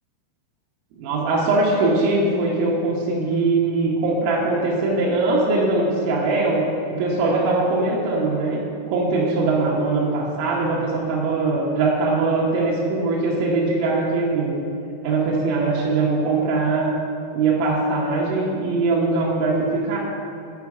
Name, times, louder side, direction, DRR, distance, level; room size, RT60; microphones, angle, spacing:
voice 1, 1.0-6.6 6.9-8.6 8.9-14.5 15.0-16.9 17.3-20.0, right 3 dB, 85° right, -4 dB, 3.4 m, -21 dB
8.3 x 5.0 x 4.8 m, 2.5 s
omnidirectional pair, 5.7 m